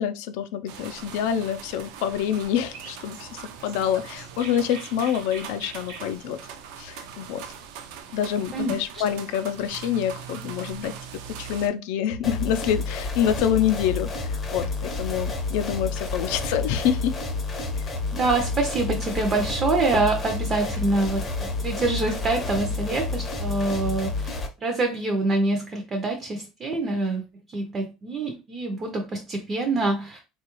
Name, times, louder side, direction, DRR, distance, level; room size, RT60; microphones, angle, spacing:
voice 1, 0.0-6.4 6.8-7.4 8.1-11.0 11.3-17.2 17.8-17.9, left 9 dB, 70° left, 0.4 m, -26 dB
sound 1, 0.7-11.7, right 8 dB, 70° right, 0.5 m, -41 dB
Chirp tweet, 2.7-7.9, right 4 dB, 90° right, 1.0 m, -45 dB
sound 2, 12.2-24.5, left 3 dB, 20° left, 0.6 m, -30 dB
voice 2, 18.1-30.2, right 2 dB, 25° right, 0.5 m, -26 dB
3.8 x 2.3 x 2.9 m
cardioid pair, 165°, 0 cm